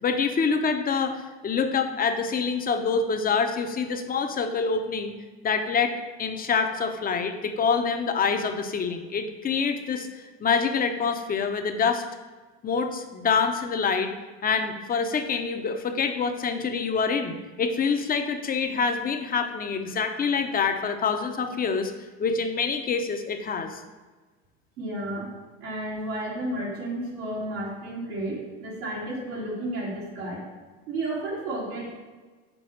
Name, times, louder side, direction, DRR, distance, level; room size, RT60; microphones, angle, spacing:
voice 1, 0.0-5.1 5.4-10.1 10.4-12.0 12.6-14.1 14.4-21.9 22.2-23.8, left 5 dB, 30° left, 6 dB, 0.8 m, -26 dB
voice 2, 24.8-25.3 25.6-30.4 30.9-32.0, right 1 dB, 85° right, -6 dB, 2.5 m, -32 dB
6.1 x 4.3 x 6.5 m, 1.3 s
supercardioid pair, 105°, 31 cm